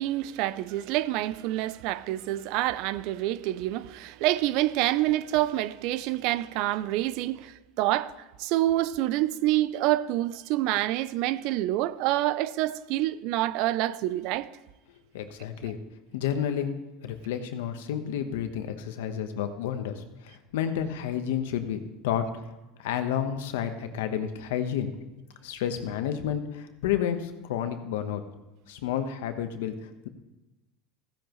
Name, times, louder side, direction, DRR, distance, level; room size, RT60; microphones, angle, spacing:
voice 1, 0.0-8.1 8.4-14.5, right 15 dB, 65° right, 0.4 m, -27 dB
voice 2, 15.1-15.8 16.1-16.7 17.0-22.2 22.8-24.9 25.4-28.2 28.7-30.1, left 9 dB, 85° left, 1.1 m, -30 dB
15.0 x 10.5 x 3.1 m
supercardioid pair, 125°, 0 cm